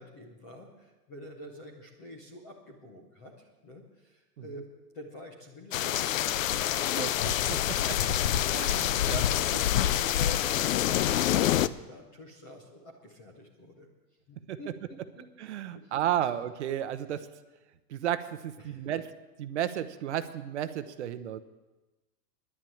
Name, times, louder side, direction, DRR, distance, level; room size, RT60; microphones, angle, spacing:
voice 1, 0.0-3.3 3.6-4.6 4.9-7.1 7.5-7.6 8.1-8.2 8.5-13.9 14.3-15.3 15.7-15.9 18.6-18.9, left 1 dB, 10° left, 1 dB, 0.5 m, -48 dB
sound 1, 5.7-11.7, left 12 dB, 55° left, 0.5 m, -26 dB
voice 2, 8.5-9.2 10.1-10.2 14.5-14.6 15.4-17.3 17.9-19.1 19.4-21.4, right 11 dB, 45° right, 11 dB, 0.8 m, -33 dB
11.0 x 10.5 x 8.5 m, 1.1 s
hypercardioid pair, 165°, 49 cm